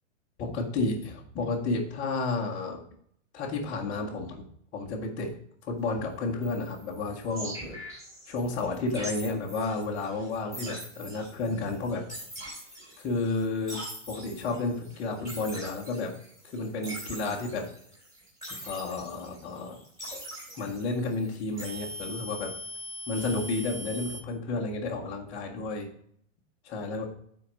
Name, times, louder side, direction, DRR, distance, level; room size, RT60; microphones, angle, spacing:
voice 1, 0.4-2.8 3.3-4.4 4.7-5.3 5.6-8.0 8.3-12.0 13.0-13.8 14.1-16.1 16.4-17.6 18.6-19.8 20.6-22.5 23.1-25.9 26.6-27.1, left 3 dB, 10° left, -6 dB, 0.6 m, -31 dB
sound 1, 6.4-24.2, equal, 10° right, 2.8 m, -42 dB
8.8 x 4.4 x 4.9 m, 0.65 s
supercardioid pair, 175°, 38 cm